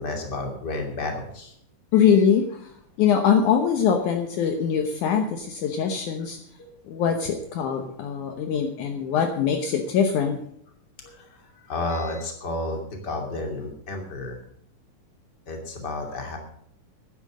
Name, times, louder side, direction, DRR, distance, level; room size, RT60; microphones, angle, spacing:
voice 1, 0.0-1.5 6.6-6.8 11.0-14.4 15.5-16.4, left 2 dB, 30° left, 2 dB, 3.0 m, -32 dB
voice 2, 1.9-2.7 3.0-6.4 6.9-10.4, left 7 dB, 70° left, 4 dB, 2.4 m, -22 dB
12.0 x 10.0 x 6.4 m, 0.69 s
omnidirectional pair, 3.8 m